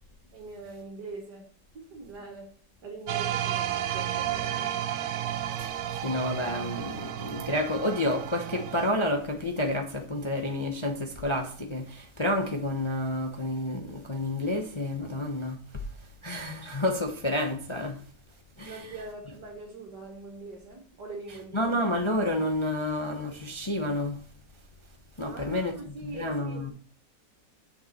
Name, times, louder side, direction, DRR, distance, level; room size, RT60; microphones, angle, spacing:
voice 1, 0.3-2.6 2.8-4.7 18.7-21.8 25.2-26.7, right 3 dB, 70° right, 2.0 m, -42 dB
sound 1, 3.1-8.9, right 11 dB, 85° right, 1.3 m, -32 dB
voice 2, 6.0-15.6 16.2-18.0 18.6-18.8 21.5-24.2 25.2-25.7 26.1-26.7, left 1 dB, 25° left, 0.7 m, -29 dB
7.3 x 6.7 x 4.3 m
omnidirectional pair, 1.9 m